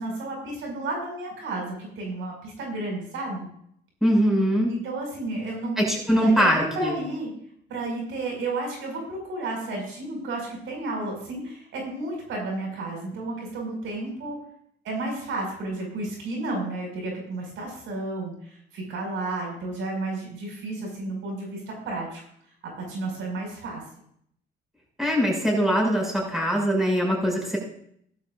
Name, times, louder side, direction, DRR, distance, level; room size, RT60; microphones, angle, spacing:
voice 1, 0.0-3.5 4.6-6.5 6.7-7.3 7.7-14.4 14.8-22.2 22.6-23.8, right 2 dB, 80° right, 0 dB, 5.8 m, -32 dB
voice 2, 4.0-4.7 5.8-6.9 25.0-27.6, equal, ahead, -2 dB, 6.3 m, -22 dB
16.0 x 13.0 x 2.6 m, 0.67 s
cardioid pair, 90°, 20 cm